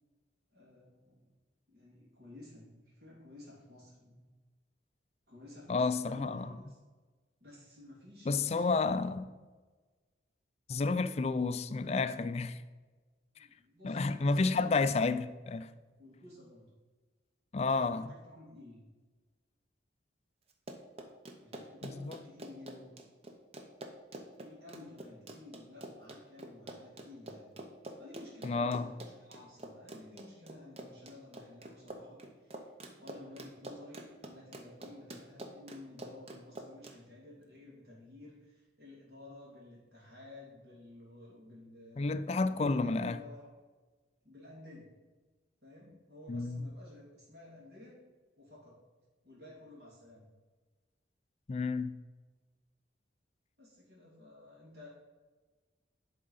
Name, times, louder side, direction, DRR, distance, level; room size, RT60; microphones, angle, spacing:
voice 1, 0.5-1.2 1.7-4.2 5.3-6.8 7.4-9.1 13.3-14.6 16.0-16.7 17.8-18.8 21.4-22.9 24.4-27.5 28.0-32.7 33.0-42.1 42.5-43.5 44.2-44.9 45.6-48.0 48.4-48.8 49.2-50.3 53.6-54.9, left 2 dB, 55° right, 2.6 m, -53 dB
voice 2, 5.7-6.4 8.3-9.3 10.7-12.6 13.8-15.7 17.5-18.2 21.8-22.2 28.4-28.9 42.0-43.2 46.3-46.7 51.5-52.0, left 3 dB, 35° left, 0.3 m, -31 dB
Run, 20.5-37.0, right 1 dB, 30° right, 0.8 m, -47 dB
11.0 x 3.7 x 5.5 m
head